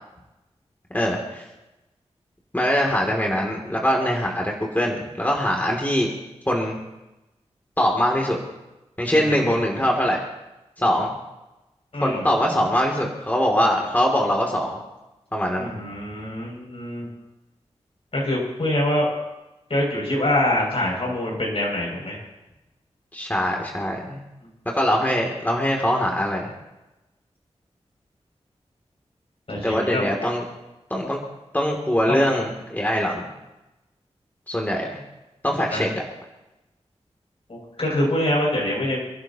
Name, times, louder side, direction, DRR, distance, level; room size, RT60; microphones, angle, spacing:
voice 1, 0.9-1.4 2.5-6.1 6.5-6.8 7.8-8.4 9.0-10.2 10.8-11.1 12.0-14.8 15.3-15.7 23.1-24.2 24.7-26.5 29.6-30.4 30.9-31.2 31.5-33.3 34.5-35.0 35.4-35.9, equal, 15° left, -1 dB, 2.8 m, -22 dB
voice 2, 9.1-9.6 11.9-12.3 15.6-17.1 18.1-19.1 19.7-22.2 29.5-30.1 32.1-32.2 35.7-35.9 37.5-39.0, left 1 dB, 60° left, -2 dB, 7.0 m, -25 dB
28.5 x 11.5 x 3.0 m, 0.98 s
cardioid pair, 50°, 12 cm